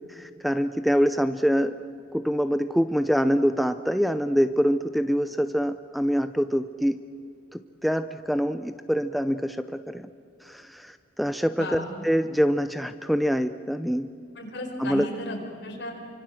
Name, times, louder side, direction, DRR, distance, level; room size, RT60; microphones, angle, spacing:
voice 1, 0.1-1.8 2.1-7.0 7.5-10.1 10.4-14.1 14.8-15.1, equal, ahead, 9 dB, 0.5 m, -25 dB
voice 2, 14.4-15.9, left 1 dB, 65° left, 1 dB, 5.6 m, -34 dB
28.0 x 25.0 x 7.7 m, 2.4 s
head